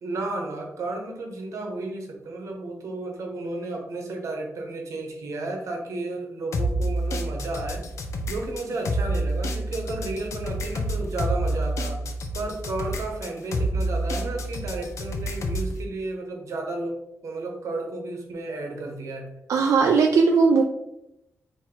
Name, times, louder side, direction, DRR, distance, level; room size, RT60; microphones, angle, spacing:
voice 1, 0.0-7.8 8.3-12.0 12.3-19.3, right 2 dB, 70° right, 2 dB, 1.0 m, -33 dB
sound 1, 6.5-15.7, right 1 dB, 65° left, 0.6 m, -28 dB
voice 2, 19.5-20.6, right 4 dB, 90° right, 2 dB, 0.4 m, -18 dB
3.9 x 2.9 x 4.4 m, 0.88 s
wide cardioid pair, 130°, 5 cm